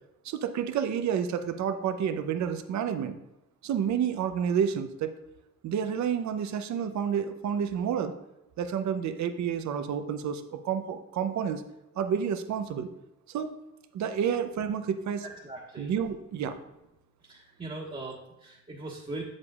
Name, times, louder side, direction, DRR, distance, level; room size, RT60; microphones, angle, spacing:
voice 1, 0.2-3.2 3.6-5.2 5.6-8.1 8.6-11.6 12.0-12.9 13.3-13.6 13.9-15.2 15.8-16.6, right 8 dB, 65° right, 9 dB, 0.7 m, -29 dB
voice 2, 15.2-16.0 17.2-19.2, right 2 dB, 25° right, -7 dB, 1.5 m, -40 dB
8.1 x 7.5 x 2.4 m, 0.92 s
cardioid pair, 90°, 30 cm